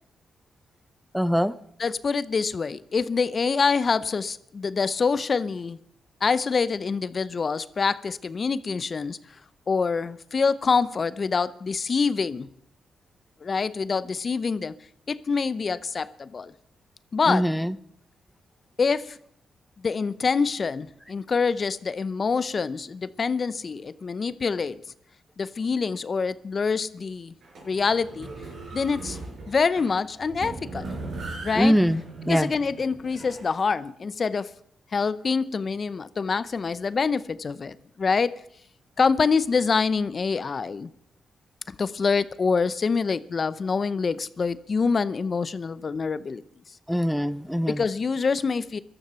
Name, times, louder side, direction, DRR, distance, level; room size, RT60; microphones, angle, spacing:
voice 1, 1.1-1.5 17.3-17.7 31.6-32.0 32.3-32.5 46.9-47.8, equal, ahead, 0.7 m, -22 dB
voice 2, 1.8-5.8 6.2-9.4 9.7-12.5 13.4-14.7 15.1-16.5 17.1-17.5 18.8-19.2 19.8-24.8 25.4-27.3 27.6-28.3 28.7-31.0 31.4-31.8 32.2-34.5 34.9-38.3 39.0-40.9 41.7-46.4 47.7-48.8, left 5 dB, 45° left, 0.7 m, -26 dB
sound 1, 27.4-33.6, right 3 dB, 70° right, 5.6 m, -39 dB
15.5 x 13.0 x 6.8 m
cardioid pair, 60°, 0 cm